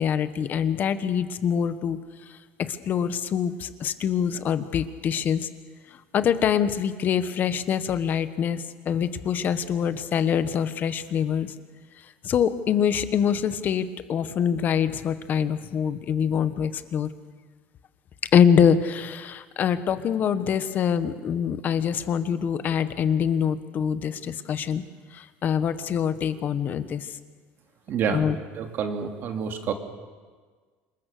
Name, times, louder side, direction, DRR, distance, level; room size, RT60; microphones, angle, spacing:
voice 1, 0.0-2.0 2.6-5.5 6.1-11.5 12.2-17.1 18.3-24.8 25.1-27.1 28.1-28.4, left 8 dB, 40° left, 12 dB, 1.3 m, -24 dB
voice 2, 27.9-28.2 28.5-29.7, right 7 dB, 50° right, 4 dB, 2.7 m, -28 dB
27.0 x 21.5 x 6.8 m, 1.5 s
cardioid pair, 125°, 5 cm